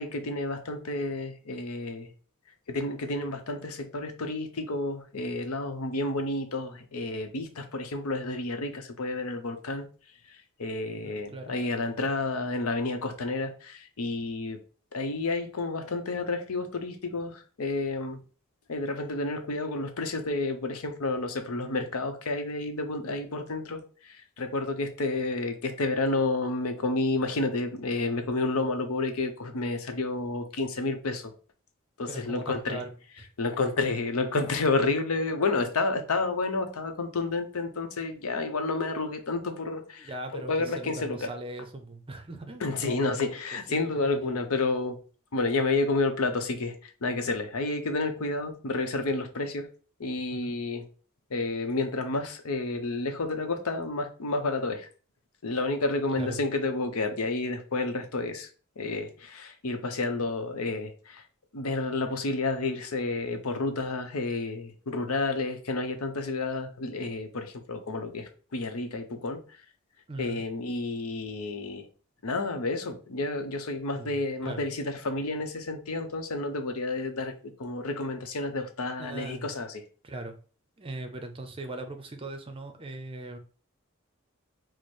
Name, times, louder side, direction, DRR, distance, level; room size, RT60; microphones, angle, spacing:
voice 1, 0.0-2.1 2.7-9.9 10.3-14.6 14.9-18.2 18.7-31.3 32.0-32.8 33.4-41.3 42.6-45.0 45.3-49.7 50.0-50.8 51.3-54.9 55.4-58.5 58.8-61.2 61.5-69.4 70.2-71.9 72.2-79.8, left 3 dB, 85° left, 0.7 m, -30 dB
voice 2, 11.0-11.7 32.1-32.9 40.0-43.3 43.7-43.9 44.2-44.3 50.3-50.5 56.1-56.4 70.1-70.4 73.9-74.2 74.5-74.6 79.0-79.5 80.0-80.3 80.8-83.4, right 2 dB, 25° right, 0.6 m, -39 dB
4.7 x 2.1 x 4.2 m
head